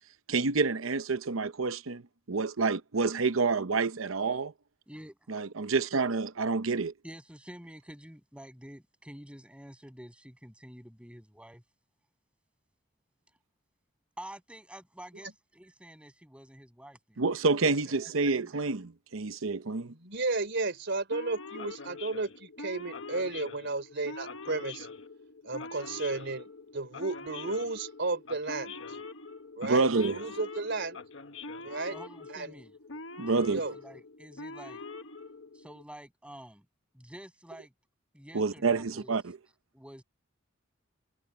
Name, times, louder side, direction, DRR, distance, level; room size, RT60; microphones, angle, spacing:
voice 1, 0.3-2.0 2.3-4.5 5.3-6.9 17.2-19.9 29.6-30.2 33.2-33.6 38.3-39.4, right 4 dB, 80° right, 0.8 m, -28 dB
voice 2, 4.9-5.3 7.0-11.6 14.2-17.2 17.7-18.5 31.6-32.7 33.4-34.8 35.5-36.7 36.9-37.7 38.1-39.1 39.7-40.0, right 1 dB, 5° right, 7.0 m, -49 dB
voice 3, 19.9-24.9 25.4-29.0 29.6-31.0 31.6-32.0 32.3-32.6 33.5-33.7, right 3 dB, 60° right, 3.6 m, -33 dB
Male speech man speaking / Siren, 21.1-35.8, left 3 dB, 65° left, 1.3 m, -44 dB
head